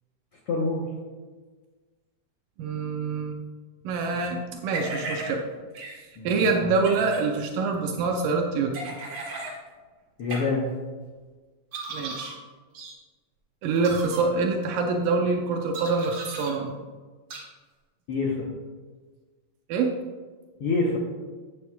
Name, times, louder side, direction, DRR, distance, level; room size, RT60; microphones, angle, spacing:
voice 1, 0.5-0.8 6.2-6.7 10.2-10.7 18.1-18.5 20.6-21.0, left 3 dB, 70° left, -2 dB, 1.4 m, -26 dB
voice 2, 2.6-3.4 3.8-5.4 5.9-8.9 11.9-12.4 13.6-16.7 19.7-19.9, right 4 dB, 80° right, 2 dB, 2.3 m, -26 dB
sound 1, 4.7-5.3 5.7-5.9 6.7-7.2 8.7-9.5 10.3-10.4 11.7-12.3 12.7-12.9 13.8-14.2 15.7-16.5 17.3-17.4, right 2 dB, 60° right, 2.9 m, -35 dB
12.0 x 8.6 x 2.3 m, 1.4 s
omnidirectional pair, 3.9 m